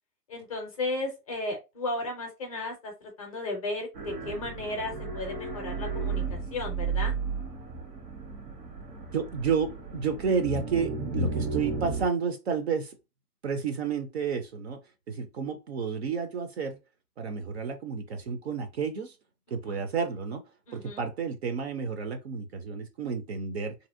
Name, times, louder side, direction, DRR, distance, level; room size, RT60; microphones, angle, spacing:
voice 1, 0.3-7.1 19.5-19.8 20.7-21.0, left 2 dB, 25° left, 0.5 m, -35 dB
sound 1, 3.9-12.1, right 4 dB, 80° right, 1.3 m, -34 dB
voice 2, 9.1-12.9 13.4-14.8 15.1-16.8 17.2-19.1 19.5-20.4 20.7-23.8, right 6 dB, 45° right, 0.4 m, -31 dB
2.8 x 2.7 x 2.5 m
hypercardioid pair, 140°, 47 cm